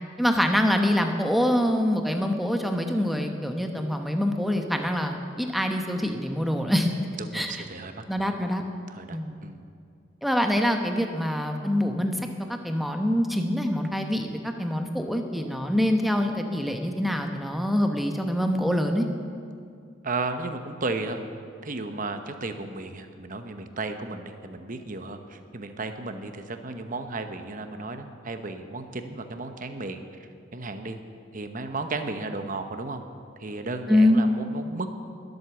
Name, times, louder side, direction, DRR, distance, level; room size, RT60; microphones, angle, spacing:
voice 1, 0.2-6.9 7.3-7.6 8.1-8.6 9.1-9.4 10.2-12.2 12.6-19.1 33.9-34.2, left 1 dB, ahead, 4 dB, 0.9 m, -25 dB
voice 2, 7.2-8.0 8.6-9.6 20.0-21.2 21.6-31.0 31.3-33.0 33.4-34.9, right 3 dB, 45° right, 7 dB, 1.0 m, -34 dB
20.5 x 8.0 x 7.1 m, 2.3 s
head